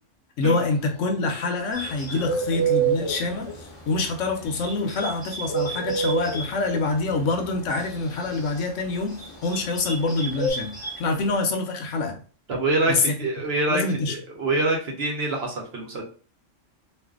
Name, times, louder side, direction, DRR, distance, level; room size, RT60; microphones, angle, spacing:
voice 1, 0.4-12.2 12.9-13.1 13.7-14.1, left 3 dB, 75° left, 4 dB, 1.0 m, -26 dB
Bird, 0.6-10.5, right 6 dB, 35° left, 0.5 m, -27 dB
Bird 2, 1.7-11.4, right 2 dB, 5° left, 1.1 m, -39 dB
voice 2, 12.5-16.0, right 2 dB, 55° right, 1 dB, 1.0 m, -25 dB
2.5 x 2.5 x 3.6 m, 0.39 s
omnidirectional pair, 1.3 m